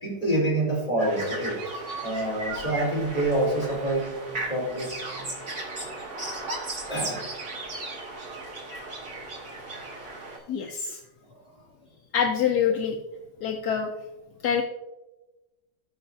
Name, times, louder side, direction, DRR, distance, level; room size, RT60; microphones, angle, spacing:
voice 1, 0.0-5.0 6.9-7.2 9.7-9.8 11.3-11.4, right 1 dB, 20° left, -5 dB, 3.4 m, -27 dB
sound 1, 1.0-10.4, right 2 dB, 85° right, 3.2 m, -36 dB
voice 2, 10.5-11.0 12.1-13.0 13.4-13.9 14.4-14.6, left 7 dB, 75° left, 4 dB, 1.2 m, -25 dB
17.5 x 6.0 x 2.6 m, 1.1 s
omnidirectional pair, 1.8 m